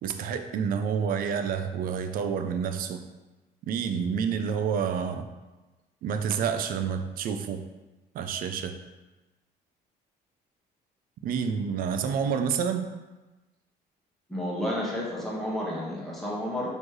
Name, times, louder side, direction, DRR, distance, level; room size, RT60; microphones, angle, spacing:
voice 1, 0.0-3.0 3.7-5.3 6.0-7.7 8.1-8.8 11.2-12.9, right 7 dB, 60° right, 8 dB, 0.4 m, -28 dB
voice 2, 14.3-16.7, left 1 dB, ahead, -6 dB, 1.3 m, -31 dB
4.3 x 3.1 x 3.0 m, 1.1 s
cardioid pair, 110°, 17 cm